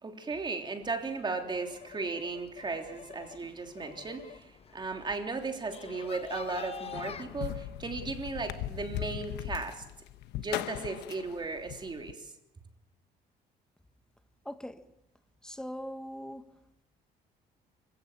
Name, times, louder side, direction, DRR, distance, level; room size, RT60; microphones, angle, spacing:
voice 1, 0.0-9.8 10.4-12.3, right 3 dB, 25° right, 3.3 m, -36 dB
sound 1, 0.8-7.2, left 7 dB, 35° left, 1.1 m, -47 dB
sound 2, 6.9-12.1, left 13 dB, 85° left, 1.1 m, -38 dB
voice 2, 14.4-14.8 15.4-16.5, equal, 5° left, 1.5 m, -40 dB
26.0 x 16.5 x 7.3 m
cardioid pair, 110°, 17 cm